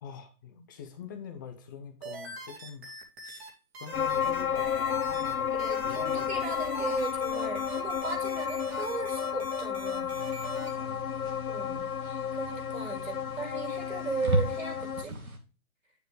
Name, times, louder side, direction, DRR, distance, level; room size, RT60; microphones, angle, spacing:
voice 1, 0.0-3.0 3.2-3.5 3.8-6.5 10.5-11.1, left 7 dB, 15° left, 6 dB, 0.7 m, -45 dB
sound 1, 2.0-3.5 3.7-5.3 5.6-10.7, right 3 dB, 45° right, 2.5 m, -43 dB
sound 2, 3.9-15.0, left 8 dB, 90° left, 0.6 m, -32 dB
voice 2, 5.4-10.2 11.5-11.9 12.3-15.2, right 4 dB, 60° right, 0 dB, 4.6 m, -37 dB
sound 3, 10.1-15.4, right 1 dB, 80° right, 2.6 m, -36 dB
10.0 x 7.0 x 3.2 m, 0.32 s
figure-of-eight pair, 140°, 43 cm